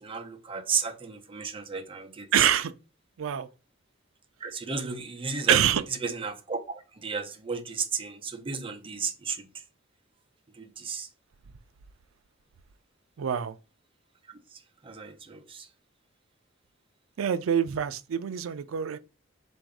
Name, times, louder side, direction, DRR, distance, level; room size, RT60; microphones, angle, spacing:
voice 1, 0.0-2.3 4.4-5.6 6.0-9.4 10.6-11.1 14.8-15.7, right 5 dB, 25° right, 0.6 m, -33 dB
voice 2, 2.3-2.7 3.2-3.5 5.5-5.8 13.2-13.6 17.2-19.0, right 9 dB, 80° right, 0.4 m, -25 dB
3.8 x 2.6 x 4.7 m
head